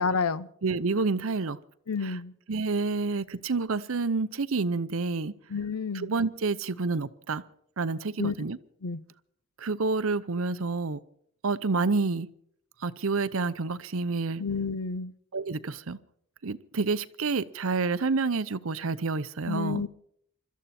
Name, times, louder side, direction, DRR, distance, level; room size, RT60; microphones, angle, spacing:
voice 1, 0.0-0.5 1.9-2.3 5.5-6.1 8.2-8.3 8.8-9.0 14.4-15.1 19.5-19.9, left 5 dB, 90° left, 17 dB, 0.7 m, -29 dB
voice 2, 0.6-1.6 2.0-2.2 2.5-5.3 5.9-7.4 7.8-8.6 9.6-11.0 11.4-12.3 12.8-14.4 15.3-16.0 16.4-19.8, right 4 dB, 75° right, 15 dB, 0.7 m, -28 dB
24.5 x 13.5 x 4.3 m, 0.67 s
head